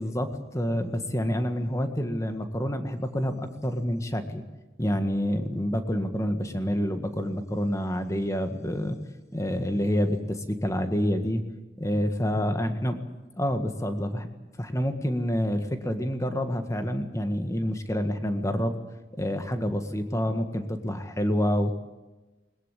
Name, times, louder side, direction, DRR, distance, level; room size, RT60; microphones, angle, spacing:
voice 1, 0.0-4.4 4.8-9.0 9.3-11.4 11.8-13.0 13.4-14.3 14.6-18.8 19.2-21.7, equal, 15° left, 7 dB, 1.8 m, -28 dB
21.0 x 21.0 x 8.4 m, 1.1 s
head